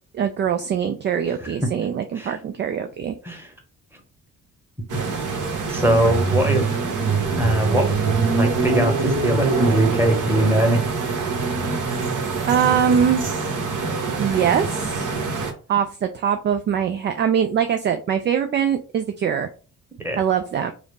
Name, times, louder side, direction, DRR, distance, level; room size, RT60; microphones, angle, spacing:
voice 1, 0.1-3.2 12.5-13.2 14.2-15.1 15.7-19.5 20.2-20.7, right 8 dB, 25° right, 8 dB, 0.4 m, -22 dB
sound 1, 4.9-15.5, right 4 dB, 45° right, 1.1 m, -24 dB
voice 2, 5.7-6.8 7.3-7.9 8.3-11.2 20.0-20.2, right 1 dB, 5° right, 3 dB, 1.3 m, -21 dB
4.9 x 2.0 x 4.1 m, 0.37 s
figure-of-eight pair, 40°, 45 cm